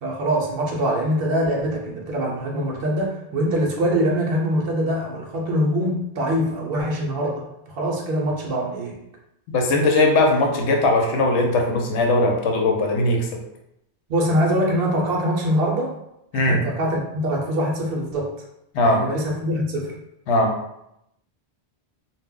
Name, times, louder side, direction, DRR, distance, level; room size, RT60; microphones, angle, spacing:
voice 1, 0.0-8.9 14.1-16.0 16.3-18.3 18.8-19.9, equal, 65° right, -1 dB, 0.7 m, -23 dB
voice 2, 9.5-13.4 16.3-16.6 18.7-19.0 20.3-20.5, left 2 dB, 85° left, 2 dB, 0.9 m, -19 dB
2.2 x 2.0 x 3.5 m, 0.82 s
omnidirectional pair, 1.2 m